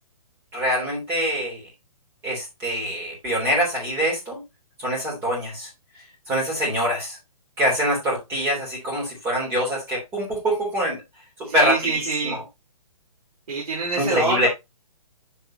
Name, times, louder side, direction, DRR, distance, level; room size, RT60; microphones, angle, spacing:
voice 1, 0.5-1.6 2.2-4.4 4.8-5.7 6.3-7.2 7.6-11.0 11.5-12.4 13.9-14.5, equal, 10° right, 3.1 m, -24 dB
voice 2, 11.4-12.4 13.5-14.5, right 3 dB, 85° right, 3.7 m, -26 dB
7.1 x 7.0 x 2.8 m
hypercardioid pair, 175°, 19 cm